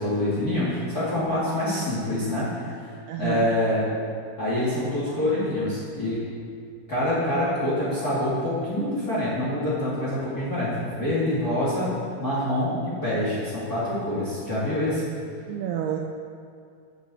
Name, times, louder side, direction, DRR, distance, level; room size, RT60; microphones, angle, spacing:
voice 1, 0.0-2.9 3.2-3.9 4.4-6.2 6.9-11.9 12.2-15.0, left 1 dB, 30° left, -9 dB, 2.0 m, -26 dB
voice 2, 3.1-3.5 15.5-16.0, right 10 dB, 90° right, 2 dB, 2.3 m, -28 dB
9.4 x 6.7 x 7.9 m, 2.3 s
omnidirectional pair, 5.3 m